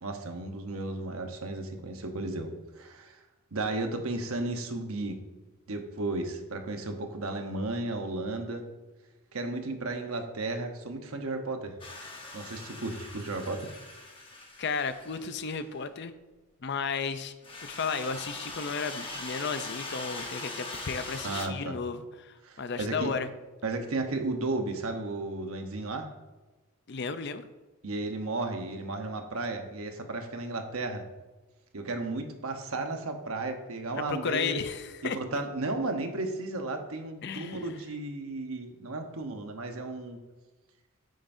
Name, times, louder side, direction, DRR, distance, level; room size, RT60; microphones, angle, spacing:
voice 1, 0.0-3.2 3.5-5.2 5.7-8.6 9.3-11.8 12.3-13.7 21.2-21.8 22.4-23.1 23.6-26.1 27.8-31.0 31.7-34.6 35.0-40.2, right 2 dB, 75° right, 5 dB, 1.0 m, -34 dB
sound 1, 11.8-15.6 17.4-21.4, left 3 dB, 25° left, 1.1 m, -41 dB
voice 2, 14.6-16.1 16.6-17.3 17.6-23.3 26.9-27.5 34.1-35.2 37.2-37.6, left 5 dB, 50° left, 11 dB, 0.5 m, -33 dB
9.1 x 8.9 x 2.7 m, 1.2 s
head